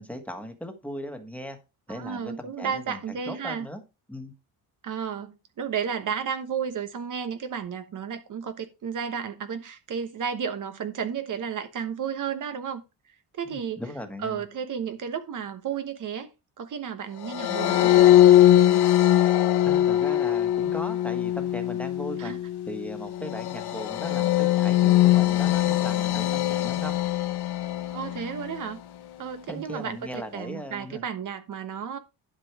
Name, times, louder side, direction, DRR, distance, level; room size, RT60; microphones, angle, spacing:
voice 1, 0.0-1.6 1.9-3.8 4.1-4.3 13.4-14.4 19.6-22.3 22.7-27.0 29.5-31.0, equal, 5° left, 1.6 m, -38 dB
voice 2, 1.9-3.7 4.8-12.8 13.4-13.8 14.2-16.3 16.6-17.9 22.2-22.4 27.9-28.8 29.2-32.0, right 7 dB, 50° right, 1.1 m, -32 dB
sound 1, 17.2-28.6, left 13 dB, 80° left, 1.4 m, -21 dB
11.5 x 5.3 x 4.7 m
cardioid pair, 150°, 39 cm